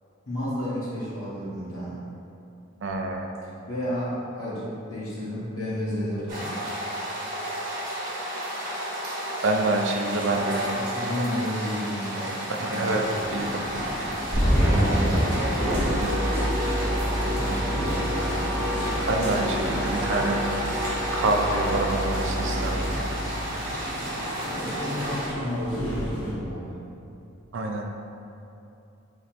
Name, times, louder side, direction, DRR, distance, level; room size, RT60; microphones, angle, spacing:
voice 1, 0.2-2.0 3.4-6.5 10.1-13.0 14.6-15.3 17.1-18.4 24.5-26.8, equal, 80° left, -9 dB, 1.5 m, -32 dB
voice 2, 2.8-3.3 9.4-10.6 12.7-13.0 13.3-13.6 15.7-16.3 19.1-20.4 21.1-22.9 27.5-27.9, right 2 dB, 60° right, 2 dB, 0.4 m, -26 dB
sound 1, 6.3-25.3, equal, 40° right, 1.0 m, -32 dB
sound 2, 13.0-26.3, equal, 25° left, 1.3 m, -34 dB
sound 3, 14.3-23.7, equal, 10° left, 0.7 m, -27 dB
4.4 x 3.9 x 3.0 m, 2.8 s
head